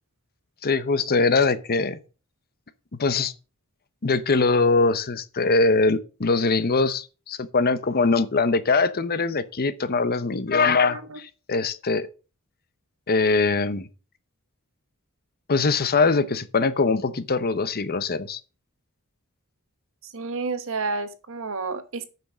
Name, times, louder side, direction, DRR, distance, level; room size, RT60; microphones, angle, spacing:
voice 1, 0.6-2.0 3.0-3.3 4.0-12.1 13.1-13.9 15.5-18.4, left 4 dB, 45° left, 0.8 m, -22 dB
voice 2, 10.8-11.2 20.0-22.0, right 3 dB, 65° right, 1.2 m, -30 dB
8.7 x 6.1 x 6.1 m
head